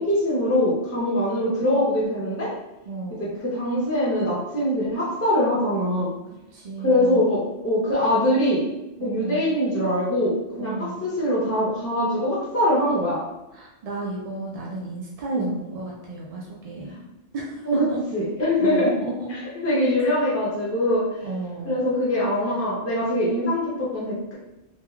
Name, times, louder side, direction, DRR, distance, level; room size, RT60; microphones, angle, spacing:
voice 1, 0.0-2.5 3.2-6.1 6.8-8.6 9.0-13.2 15.3-15.5 17.7-17.9 18.1-18.9 19.6-21.1 21.7-24.3, left 1 dB, 20° left, -7 dB, 0.4 m, -23 dB
voice 2, 2.9-3.3 6.5-7.3 9.0-9.5 10.6-11.0 13.5-17.0 17.3-18.0 18.6-19.3 21.2-21.9, right 2 dB, 75° right, -3 dB, 0.3 m, -33 dB
3.0 x 2.3 x 2.3 m, 0.97 s
omnidirectional pair, 1.2 m